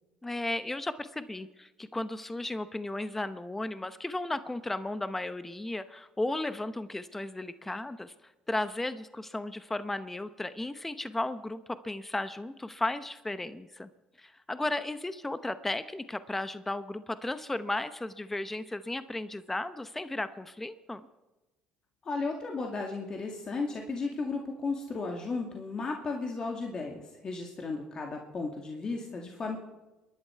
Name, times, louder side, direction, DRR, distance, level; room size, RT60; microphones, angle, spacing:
voice 1, 0.2-8.1 8.5-13.9 14.2-21.0, left 2 dB, 10° left, 13 dB, 0.8 m, -35 dB
voice 2, 22.0-29.6, left 3 dB, 40° left, 1 dB, 2.3 m, -34 dB
28.0 x 11.0 x 4.6 m, 1.1 s
supercardioid pair, 75°, 2 cm